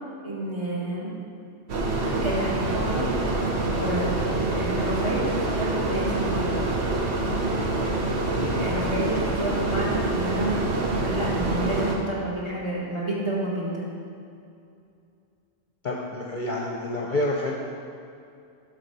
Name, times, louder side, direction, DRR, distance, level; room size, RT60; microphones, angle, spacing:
voice 1, 0.2-1.2 2.0-3.1 3.7-4.1 4.5-6.5 8.6-10.7 10.9-13.8, right 1 dB, 25° right, -5 dB, 1.5 m, -30 dB
sound 1, 1.7-12.0, right 2 dB, 60° right, 1.1 m, -26 dB
voice 2, 15.8-17.5, left 1 dB, 45° left, -2 dB, 0.7 m, -28 dB
8.5 x 4.1 x 6.7 m, 2.5 s
omnidirectional pair, 1.3 m